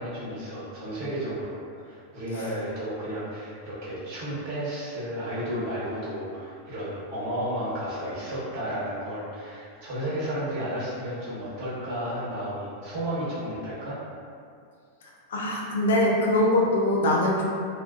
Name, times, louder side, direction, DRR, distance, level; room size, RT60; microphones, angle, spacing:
voice 1, 0.0-14.0, equal, 45° right, -10 dB, 1.0 m, -32 dB
voice 2, 15.3-17.5, left 1 dB, 60° left, -1 dB, 0.3 m, -22 dB
2.4 x 2.3 x 2.4 m, 2.4 s
figure-of-eight pair, 90°, 0 cm